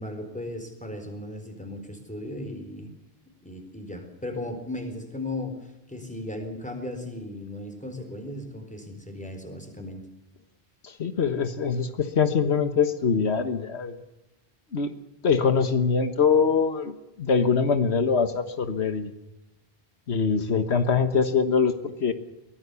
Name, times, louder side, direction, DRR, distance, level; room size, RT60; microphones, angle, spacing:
voice 1, 0.0-2.9 3.4-10.1, left 1 dB, 5° left, 5 dB, 4.2 m, -36 dB
voice 2, 10.8-14.0 14.7-15.0 15.2-19.1 20.1-22.1, left 5 dB, 90° left, 9 dB, 1.6 m, -23 dB
23.0 x 17.5 x 6.9 m, 0.95 s
omnidirectional pair, 1.1 m